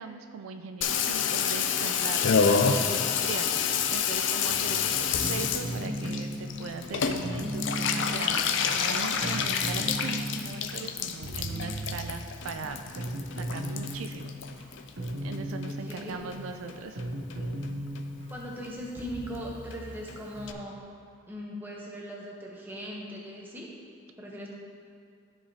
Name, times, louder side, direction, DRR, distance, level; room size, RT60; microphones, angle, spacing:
voice 1, 0.0-13.1 13.4-14.3 15.2-17.1, right 4 dB, 80° right, 7 dB, 0.4 m, -39 dB
Water tap faucet / Bathtub (filling or washing), 0.8-15.4 15.6-16.4 16.7-16.8 17.0-17.1 17.3-17.7 18.0-18.1 18.3-18.4 18.6-18.7 19.0-19.1 19.3-19.4 19.7-19.8 20.1-20.2 20.5-20.6, left 6 dB, 60° left, 0.4 m, -29 dB
sound 1, 4.5-20.6, equal, 60° right, 0.8 m, -37 dB
voice 2, 15.7-16.1 18.3-20.8 21.3-23.7 24.2-24.5, equal, 10° right, -3 dB, 0.9 m, -39 dB
13.0 x 4.9 x 2.8 m, 2.3 s
head